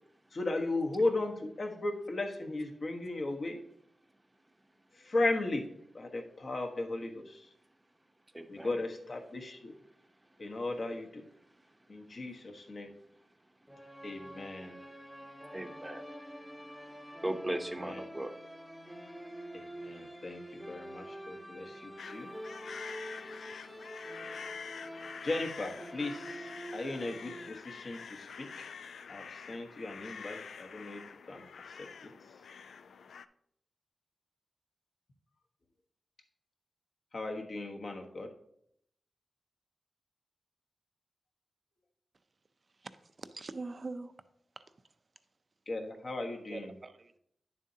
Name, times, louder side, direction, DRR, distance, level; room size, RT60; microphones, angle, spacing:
voice 1, 0.3-3.6 4.9-5.6 5.9-7.5 8.5-9.7 10.4-11.2 11.9-12.9 14.0-14.7 17.8-18.0 19.5-22.3 25.2-28.5 29.1-31.0 31.3-32.1 37.1-38.3 45.7-46.7, left 2 dB, 50° left, 1.2 m, -36 dB
voice 2, 8.3-8.7 15.5-16.0 17.2-18.3, right 1 dB, 15° right, 0.8 m, -37 dB
sound 1, 13.7-27.5, equal, 5° left, 1.0 m, -47 dB
sound 2, 22.0-33.3, left 6 dB, 85° left, 0.3 m, -46 dB
voice 3, 43.2-44.2 46.5-47.2, right 3 dB, 45° right, 0.5 m, -42 dB
9.5 x 7.2 x 2.8 m
cardioid pair, 75°, 0 cm